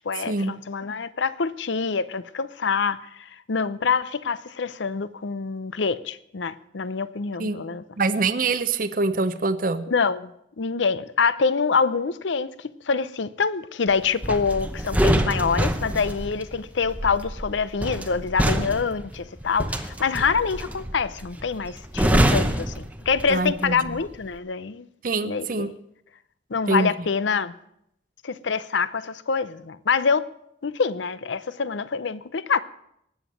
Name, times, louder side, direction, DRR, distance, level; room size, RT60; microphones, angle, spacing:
voice 1, 0.0-7.8 9.9-24.9 25.2-25.7 26.5-27.5 28.2-30.3 30.6-32.6, left 5 dB, 75° left, 0.6 m, -26 dB
voice 2, 8.0-9.8 23.3-23.8 25.0-25.7 26.7-26.9, right 3 dB, 45° right, 0.6 m, -24 dB
sound 1, 14.2-23.6 23.9-24.2, right 1 dB, 10° right, 0.7 m, -25 dB
19.0 x 7.2 x 7.5 m
head